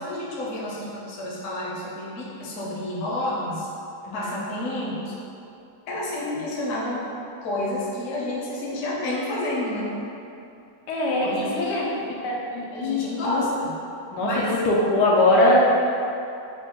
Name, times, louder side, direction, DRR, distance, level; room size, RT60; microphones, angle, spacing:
voice 1, 0.0-3.7 4.1-5.1 5.9-7.0 7.4-9.9 11.2-11.8 12.7-13.8 14.2-14.6, left 1 dB, 55° left, -5 dB, 0.9 m, -30 dB
voice 2, 4.0-4.4 10.9-11.8 12.2-13.5 14.1-14.3 14.6-15.6, left 2 dB, 80° left, -3 dB, 1.2 m, -22 dB
4.1 x 2.1 x 4.3 m, 2.7 s
omnidirectional pair, 1.8 m